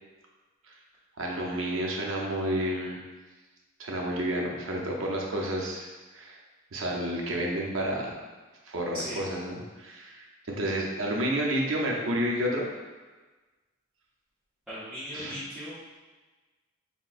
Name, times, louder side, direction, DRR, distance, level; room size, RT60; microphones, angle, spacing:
voice 1, 1.2-3.0 3.8-5.9 6.1-6.4 6.7-8.1 8.7-12.7 15.1-15.4, right 1 dB, 85° right, -1 dB, 0.7 m, -30 dB
voice 2, 14.7-15.8, equal, 5° right, -16 dB, 1.0 m, -37 dB
5.8 x 2.1 x 2.5 m, 1.3 s
head